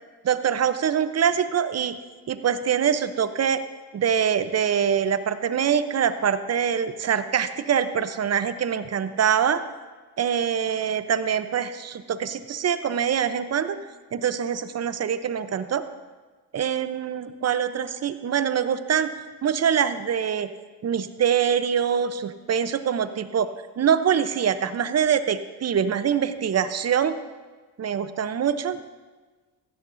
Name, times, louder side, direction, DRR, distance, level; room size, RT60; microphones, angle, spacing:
voice 1, 0.2-2.0 2.3-3.6 3.9-9.6 10.2-13.8 14.1-15.8 16.5-19.1 19.4-20.5 20.8-23.5 23.8-27.2 27.8-28.8, right 8 dB, 35° right, 12 dB, 0.8 m, -24 dB
16.0 x 12.5 x 2.7 m, 1.3 s
supercardioid pair, 65°, 46 cm